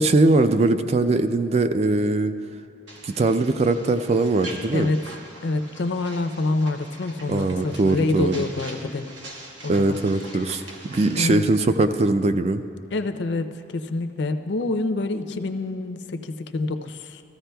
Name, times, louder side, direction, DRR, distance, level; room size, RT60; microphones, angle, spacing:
voice 1, 0.0-2.3 3.0-4.9 7.3-8.4 9.7-12.6, right 2 dB, 35° right, 10 dB, 0.3 m, -21 dB
sound 1, 2.9-11.4, right 1 dB, 70° right, 1.2 m, -43 dB
voice 2, 5.4-9.1 9.6-10.0 10.3-10.6 11.2-11.5 12.9-17.2, left 2 dB, 65° left, 8 dB, 0.5 m, -27 dB
14.5 x 14.0 x 2.3 m, 2.5 s
head